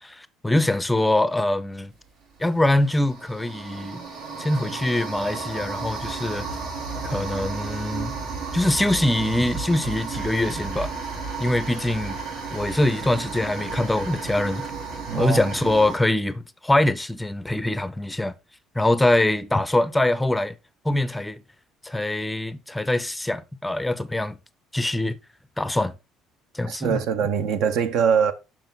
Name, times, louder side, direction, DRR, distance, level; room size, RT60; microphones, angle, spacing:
voice 1, 0.0-1.9 2.4-4.0 4.4-6.5 7.0-8.1 8.5-10.9 11.4-12.2 12.5-14.7 15.1-18.3 18.8-20.5 20.8-21.4 21.8-24.4 24.7-25.2 25.6-25.9 26.5-27.0, left 1 dB, 10° left, 0.5 m, -23 dB
sound 1, 1.9-2.1 2.6-16.0, right 4 dB, 90° right, 3.5 m, -33 dB
voice 2, 15.1-15.4 26.6-28.3, right 7 dB, 75° right, 0.9 m, -22 dB
6.8 x 5.9 x 3.9 m
cardioid pair, 110°, 0 cm